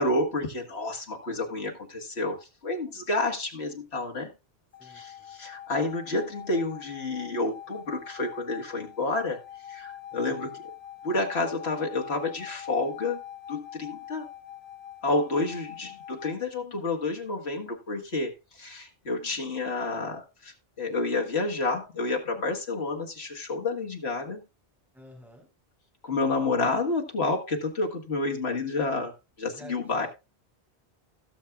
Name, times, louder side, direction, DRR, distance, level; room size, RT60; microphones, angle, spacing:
voice 1, 0.0-4.3 4.8-9.4 9.7-10.7 11.0-13.2 13.5-14.3 15.0-24.4 26.0-30.1, left 2 dB, 90° left, 2.0 m, -30 dB
sound 1, 4.7-16.4, left 10 dB, 45° left, 0.7 m, -44 dB
voice 2, 4.8-5.4 24.9-25.5 29.5-30.1, equal, ahead, 4.4 m, -50 dB
17.0 x 7.0 x 2.4 m
omnidirectional pair, 1.1 m